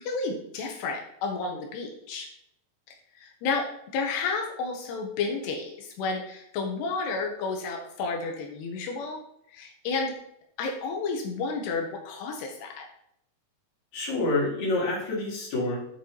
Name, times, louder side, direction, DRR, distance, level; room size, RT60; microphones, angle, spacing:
voice 1, 0.0-2.3 3.2-3.7 3.9-9.2 9.5-10.2 10.6-12.8, left 4 dB, 85° left, 2 dB, 3.3 m, -31 dB
voice 2, 13.9-15.8, left 2 dB, 50° left, -4 dB, 3.8 m, -27 dB
8.2 x 7.1 x 4.5 m, 0.74 s
omnidirectional pair, 4.7 m